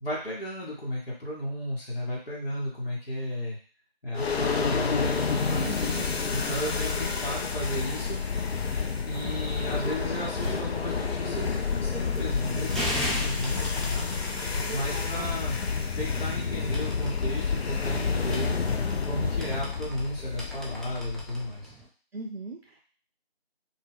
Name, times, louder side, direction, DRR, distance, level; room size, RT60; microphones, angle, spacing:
voice 1, 0.0-3.6 4.0-5.7 6.3-8.2 9.0-14.2 14.7-15.6 15.9-18.5 19.0-21.7, equal, 65° left, -6 dB, 0.9 m, -34 dB
sound 1, 4.1-21.5, left 5 dB, 85° left, 0.5 m, -29 dB
voice 2, 5.6-6.1 9.2-9.4 14.6-15.4 22.1-22.8, right 3 dB, 75° right, 2 dB, 0.5 m, -40 dB
sound 2, 8.7-19.3, left 1 dB, 35° left, 1.0 m, -47 dB
sound 3, 11.9-21.9, equal, ahead, 0.4 m, -39 dB
2.1 x 2.1 x 3.4 m, 0.42 s
figure-of-eight pair, 175°, 31 cm